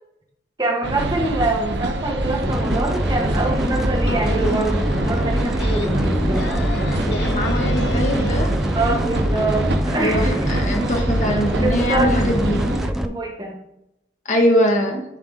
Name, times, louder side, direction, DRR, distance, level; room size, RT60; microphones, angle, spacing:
voice 1, 0.6-6.7 8.7-10.5 11.5-12.2 12.8-13.6, right 2 dB, 25° right, 0 dB, 1.2 m, -25 dB
sound 1, 0.8-12.9, right 2 dB, 80° right, 0.7 m, -26 dB
sound 2, 2.4-13.1, equal, ahead, 0.4 m, -24 dB
sound 3, 4.0-8.5, left 4 dB, 70° left, 0.5 m, -33 dB
voice 2, 7.0-8.5 10.0-12.7 14.3-15.0, equal, 45° left, 1 dB, 1.4 m, -22 dB
10.5 x 3.8 x 3.6 m, 0.83 s
head